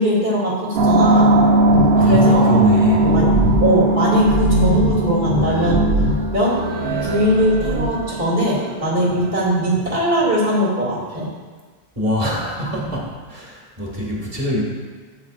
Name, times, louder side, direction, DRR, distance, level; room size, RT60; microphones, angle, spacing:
voice 1, 0.0-1.3 2.0-2.5 3.1-3.3 3.6-5.9 6.3-6.7 7.0-11.3, equal, 60° right, -7 dB, 2.8 m, -20 dB
sound 1, 0.7-9.6, right 1 dB, 75° right, 1.0 m, -18 dB
voice 2, 2.0-3.6 12.0-14.6, equal, 35° right, -3 dB, 1.9 m, -24 dB
11.5 x 8.7 x 2.5 m, 1.4 s
omnidirectional pair, 1.1 m